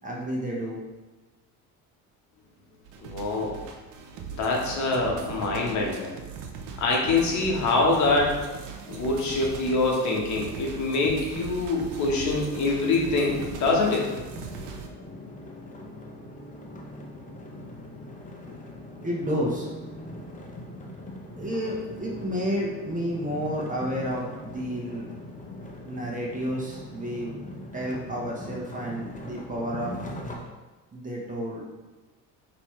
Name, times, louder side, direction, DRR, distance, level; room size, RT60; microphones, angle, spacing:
voice 1, 0.0-0.8 19.0-19.7 21.3-25.0 25.9-27.4 27.7-29.9 30.9-31.6, equal, 20° right, -3 dB, 1.0 m, -30 dB
sound 1, 2.8-14.9, right 6 dB, 55° right, 0.7 m, -39 dB
voice 2, 3.0-3.6 4.3-6.1 6.8-8.5 8.9-14.1, left 3 dB, 50° left, -1 dB, 1.1 m, -25 dB
sound 2, 13.2-30.4, left 1 dB, 20° left, 0.7 m, -41 dB
5.3 x 3.0 x 3.1 m, 1.2 s
supercardioid pair, 100°, 37 cm